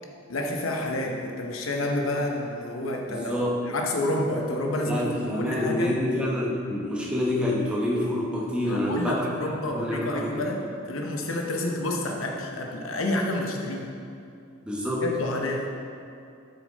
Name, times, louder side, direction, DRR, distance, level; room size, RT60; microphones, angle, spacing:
voice 1, 0.3-5.9 8.6-13.9 15.0-15.7, left 1 dB, 85° left, 1 dB, 0.9 m, -29 dB
voice 2, 3.1-3.6 4.9-9.3 9.7-10.4 14.6-15.1, left 1 dB, 5° right, -5 dB, 1.1 m, -27 dB
6.9 x 6.4 x 4.0 m, 2.5 s
head